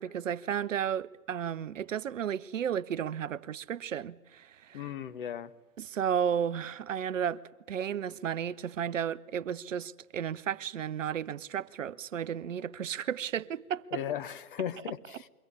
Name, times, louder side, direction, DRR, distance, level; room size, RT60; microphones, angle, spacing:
voice 1, 0.0-4.9 5.8-7.4 7.7-14.0, right 8 dB, 60° right, 0.8 m, -33 dB
voice 2, 4.7-5.5 13.9-15.3, left 9 dB, 35° left, 0.9 m, -36 dB
23.5 x 16.0 x 9.7 m
hypercardioid pair, 140°, 45 cm